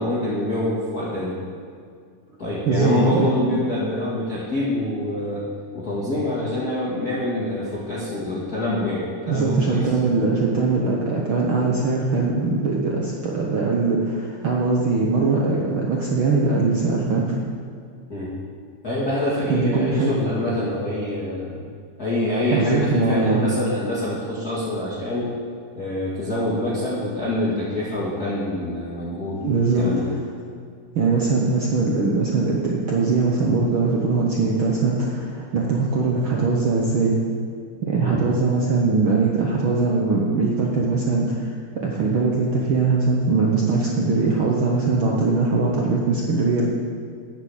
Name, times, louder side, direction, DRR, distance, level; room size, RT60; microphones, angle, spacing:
voice 1, 0.0-1.4 2.4-5.4 5.7-9.9 18.1-18.4 18.8-21.6 22.0-25.3 25.8-29.4 29.8-30.2 38.0-38.2, left 1 dB, 35° left, -8 dB, 1.9 m, -25 dB
voice 2, 2.6-3.3 9.3-17.4 19.5-20.1 22.5-23.4 29.4-30.1 30.9-37.2 37.9-41.5 41.8-46.7, right 3 dB, 80° right, -2 dB, 1.1 m, -21 dB
10.5 x 8.0 x 7.2 m, 2.2 s
omnidirectional pair, 3.9 m